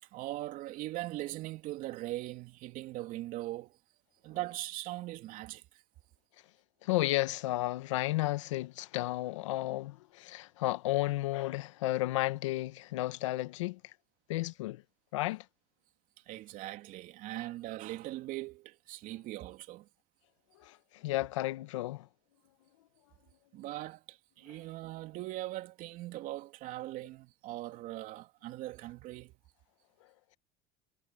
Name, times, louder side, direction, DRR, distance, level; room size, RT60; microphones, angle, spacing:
voice 1, 0.0-3.8 4.2-5.8 16.2-19.9 23.5-29.4, right 16 dB, 60° right, 3.2 m, -40 dB
voice 2, 6.8-13.8 14.3-14.8 15.1-15.4 20.6-22.1, left 17 dB, 85° left, 1.4 m, -33 dB
supercardioid pair, 90°, 16 cm